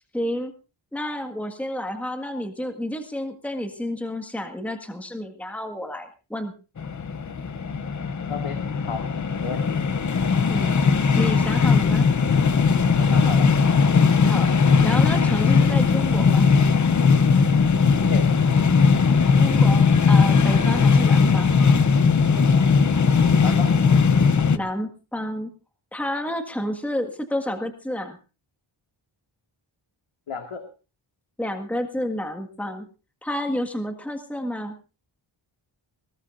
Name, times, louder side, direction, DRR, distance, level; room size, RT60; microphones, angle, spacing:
voice 1, 0.1-0.5 0.9-6.5 10.5-10.7 11.1-12.1 14.2-14.5 14.8-16.5 19.4-21.6 24.5-25.5 25.9-28.2 31.4-32.9 33.2-34.8, left 1 dB, 5° left, 6 dB, 1.7 m, -30 dB
sound 1, 6.8-24.6, left 5 dB, 40° left, 0.8 m, -19 dB
voice 2, 8.3-8.6 8.9-9.1 9.4-9.8 13.0-13.5 18.1-18.3 23.4-23.7 30.3-30.6, left 5 dB, 90° left, 4 dB, 2.2 m, -33 dB
21.0 x 18.5 x 2.6 m, 0.33 s
wide cardioid pair, 175°, 48 cm